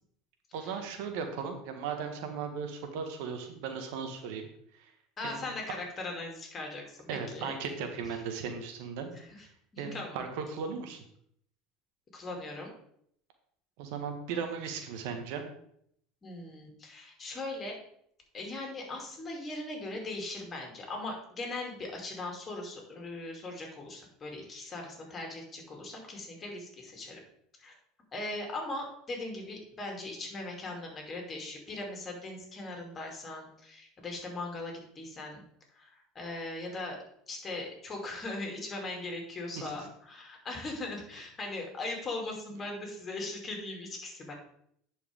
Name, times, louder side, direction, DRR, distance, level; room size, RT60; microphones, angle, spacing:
voice 1, 0.5-4.5 4.7-4.9 5.2-5.4 7.1-9.1 9.4-9.5 9.8-11.0 13.8-15.4 39.6-39.7, right 6 dB, 70° right, 6 dB, 1.3 m, -37 dB
voice 2, 5.2-7.1 7.3-7.5 9.1-9.4 9.7-10.2 12.1-12.7 16.2-17.7 18.3-27.2 27.6-27.7 28.1-35.4 35.7-37.0 37.3-44.3, left 2 dB, 30° left, 1 dB, 2.8 m, -39 dB
10.5 x 4.7 x 3.6 m, 0.69 s
hypercardioid pair, 90°, 0 cm